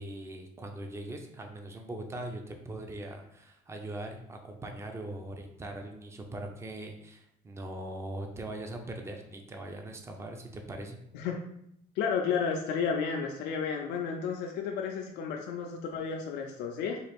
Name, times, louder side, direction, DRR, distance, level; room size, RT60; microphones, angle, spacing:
voice 1, 0.0-11.0, right 1 dB, 15° right, 3 dB, 0.5 m, -41 dB
voice 2, 12.0-17.0, left 6 dB, 85° left, 1 dB, 0.4 m, -32 dB
3.8 x 2.4 x 3.4 m, 0.76 s
cardioid pair, 110°, 17 cm